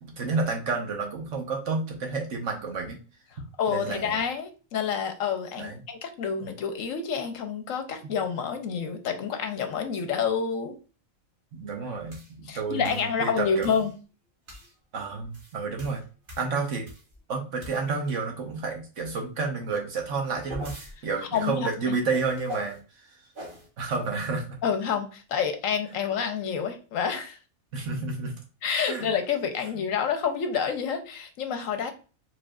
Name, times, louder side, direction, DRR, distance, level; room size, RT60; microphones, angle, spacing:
voice 1, 0.0-3.0 3.7-4.2 5.6-5.8 8.0-8.1 11.5-13.7 14.5-14.6 14.9-16.0 16.4-16.9 17.3-20.7 21.0-23.2 23.8-24.6 27.7-28.3 28.9-29.1, right 4 dB, 65° right, 2 dB, 1.4 m, -30 dB
voice 2, 3.6-10.8 12.5-13.9 21.3-21.5 21.9-22.0 24.6-27.4 28.6-31.9, left 6 dB, 75° left, 7 dB, 1.1 m, -28 dB
sound 1, 12.1-12.3 12.8-13.1 13.6-13.9 14.5-14.7 15.2-17.2 17.6-18.1 20.0-20.9 22.1-22.8 23.3-23.7, equal, 40° right, 1.3 m, -42 dB
4.9 x 4.0 x 2.4 m, 0.35 s
omnidirectional pair, 1.4 m